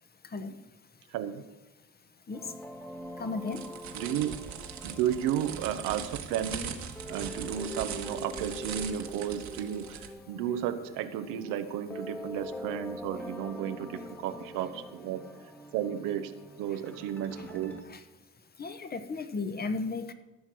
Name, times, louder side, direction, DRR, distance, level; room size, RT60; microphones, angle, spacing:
voice 1, 1.1-1.4 3.9-4.4 4.8-6.8 7.1-15.2 15.7-16.3 16.6-17.8, right 10 dB, 85° right, 9 dB, 1.1 m, -33 dB
sound 1, 2.3-17.8, left 1 dB, 5° left, 1.3 m, -44 dB
voice 2, 3.2-3.6 17.9-18.0 18.6-20.1, left 3 dB, 30° left, 10 dB, 1.1 m, -34 dB
sound 2, 3.5-10.1, right 8 dB, 60° right, 1.5 m, -40 dB
15.0 x 6.6 x 6.2 m, 1.0 s
cardioid pair, 95°, 32 cm